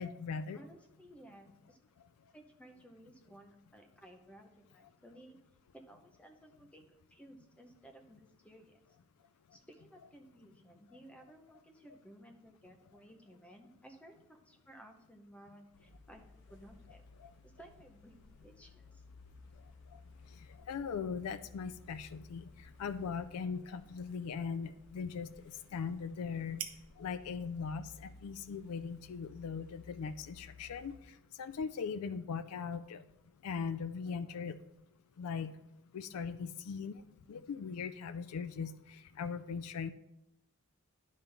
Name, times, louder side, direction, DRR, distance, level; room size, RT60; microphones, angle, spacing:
voice 1, 0.0-0.6 17.2-17.3 19.6-20.0 20.3-26.6 27.0-33.0 33.4-34.6 35.2-35.5 35.9-39.9, left 6 dB, 90° left, 12 dB, 0.4 m, -40 dB
voice 2, 0.5-1.8 2.3-5.4 5.7-8.8 9.5-17.0 17.4-19.0, right 1 dB, 5° left, 4 dB, 0.6 m, -57 dB
sound 1, 15.7-31.0, left 3 dB, 55° left, 1.1 m, -58 dB
sound 2, 22.3-30.0, right 9 dB, 70° right, 0.8 m, -54 dB
10.0 x 5.4 x 3.4 m, 0.84 s
head